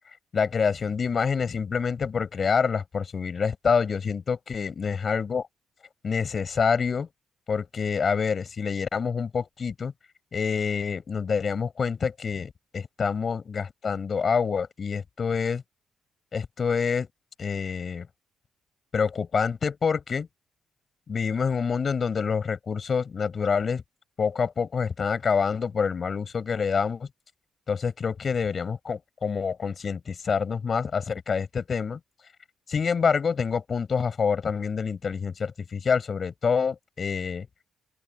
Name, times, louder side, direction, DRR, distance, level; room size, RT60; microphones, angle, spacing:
voice 1, 0.3-5.4 6.0-7.1 7.5-9.9 10.3-15.6 16.3-17.1 17.4-18.1 18.9-20.3 21.1-23.8 24.2-27.1 27.7-32.0 32.7-37.5, left 6 dB, 35° left, 5.2 m, -27 dB
open air
cardioid pair, 155°, 0 cm